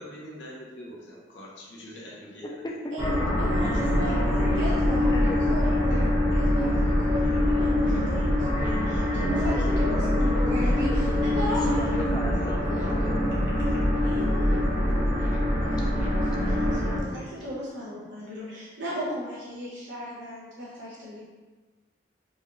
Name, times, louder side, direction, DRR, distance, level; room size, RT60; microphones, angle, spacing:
voice 1, 0.0-2.4, equal, 90° left, -4 dB, 1.0 m, -43 dB
voice 2, 2.6-3.9 4.4-4.7 5.1-5.4 9.2-11.5 11.8-13.2, left 1 dB, 20° left, -2 dB, 0.5 m, -36 dB
sound 1, 3.0-17.0, left 1 dB, 15° right, 1.0 m, -24 dB
voice 3, 3.5-11.8 12.4-13.4 14.0-21.2, equal, 75° right, -8 dB, 1.0 m, -37 dB
4.1 x 2.5 x 3.2 m, 1.3 s
head